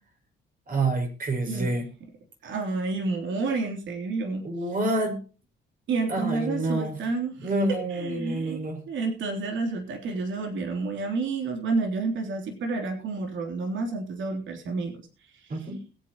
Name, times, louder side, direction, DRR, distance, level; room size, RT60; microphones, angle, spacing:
voice 1, 0.7-1.9 4.4-5.2 6.1-7.0 7.4-8.8 15.5-15.8, right 2 dB, 45° right, 4 dB, 5.6 m, -28 dB
voice 2, 2.4-4.5 5.9-8.6 8.9-15.1 15.3-15.7, right 3 dB, 70° right, 4 dB, 3.3 m, -30 dB
21.0 x 9.2 x 3.0 m, 0.34 s
cardioid pair, 90°, 20 cm